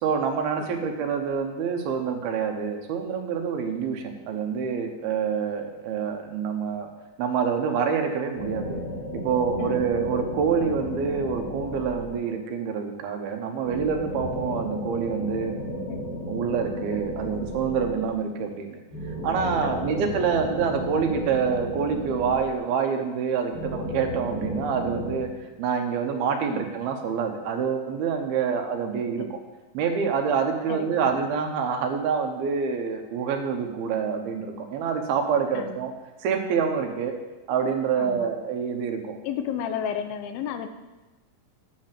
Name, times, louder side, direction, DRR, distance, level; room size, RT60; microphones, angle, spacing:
voice 1, 0.0-6.9 7.2-8.9 9.1-15.6 16.3-18.8 19.2-25.3 25.6-29.4 29.7-35.9 36.2-37.2 37.5-39.2, right 6 dB, 80° right, 5 dB, 3.0 m, -27 dB
sound 1, 8.3-12.5 13.6-18.3 18.9-22.9 23.5-25.2, equal, 40° left, 3.9 m, -33 dB
voice 2, 19.6-20.0 26.5-26.7 29.2-29.3 30.7-31.1 35.5-35.8 38.0-38.3 39.2-40.7, left 8 dB, 80° left, 9 dB, 2.6 m, -33 dB
9.5 x 6.5 x 7.5 m, 1.1 s
omnidirectional pair, 4.3 m